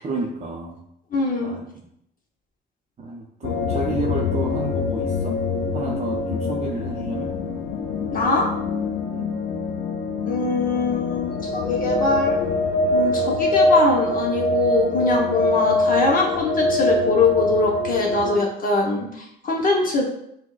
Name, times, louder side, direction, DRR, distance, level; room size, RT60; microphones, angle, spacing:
voice 1, 0.0-0.8 1.4-1.9 3.0-5.4 5.7-7.3 9.1-9.3, right 3 dB, 35° right, -2 dB, 0.6 m, -31 dB
voice 2, 1.1-1.6 8.1-8.5 10.2-12.4 12.9-20.0, left 3 dB, 45° left, -1 dB, 0.8 m, -22 dB
sound 1, 3.4-18.4, left 2 dB, 90° left, 0.5 m, -24 dB
6.0 x 2.1 x 2.4 m, 0.76 s
cardioid pair, 90°, 20 cm